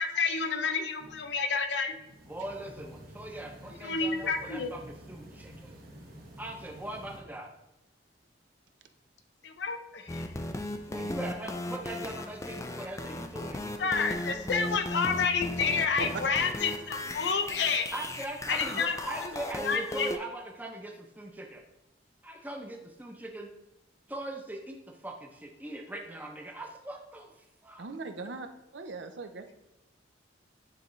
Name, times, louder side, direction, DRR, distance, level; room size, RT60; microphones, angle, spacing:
voice 1, 0.0-1.9 3.8-4.7 9.4-10.3 13.8-17.9 18.5-19.0 19.2-19.3 19.6-20.1, left 5 dB, 70° left, 6 dB, 0.7 m, -29 dB
sound 1, 1.0-1.3 1.8-7.2, right 1 dB, 55° right, 1.4 m, -50 dB
voice 2, 2.3-5.8 6.4-7.5 10.9-14.5 17.9-21.6 22.2-23.5 24.1-27.3 27.6-27.9, right 1 dB, 10° right, 2 dB, 0.7 m, -41 dB
sound 2, 10.1-20.2, left 1 dB, 15° left, 0.4 m, -37 dB
voice 3, 15.7-16.2 17.0-17.1 27.8-28.5 28.7-29.5, right 3 dB, 75° right, 7 dB, 0.6 m, -39 dB
9.3 x 3.8 x 3.1 m, 0.91 s
head